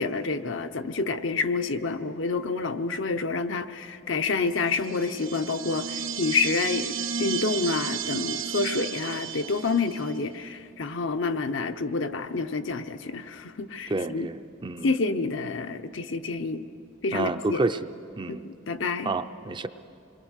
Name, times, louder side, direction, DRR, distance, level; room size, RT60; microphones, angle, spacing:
voice 1, 0.0-6.9 7.2-14.3 14.8-16.6 17.0-17.6 18.4-19.1, left 4 dB, 70° left, 8 dB, 0.8 m, -28 dB
sound 1, 4.7-10.1, right 7 dB, 85° right, 0.9 m, -33 dB
voice 2, 13.9-14.9 17.1-17.8 18.2-18.4 19.0-19.7, right 3 dB, 25° right, 9 dB, 0.5 m, -29 dB
27.0 x 21.5 x 6.5 m, 2.6 s
head